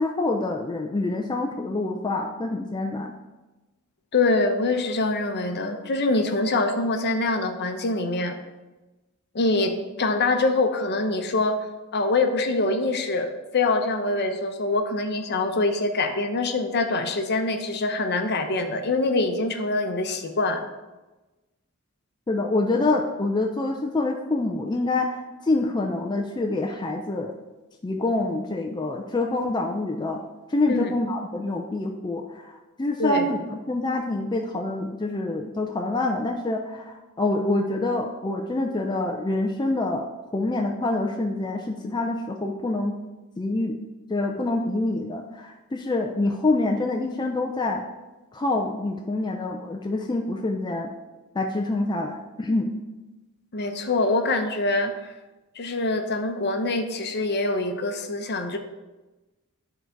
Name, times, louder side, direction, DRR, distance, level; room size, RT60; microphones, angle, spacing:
voice 1, 0.0-3.1 22.3-27.3 27.8-30.2 30.5-40.1 40.3-43.0 43.4-43.8 44.1-47.8 48.3-50.9 51.3-52.7, left 2 dB, 20° left, 2 dB, 0.4 m, -26 dB
voice 2, 4.1-8.4 9.3-11.6 11.9-20.6 30.7-30.9 33.0-33.3 53.5-55.1 55.6-58.6, left 2 dB, 50° left, 6 dB, 0.8 m, -24 dB
10.5 x 4.0 x 4.5 m, 1.1 s
head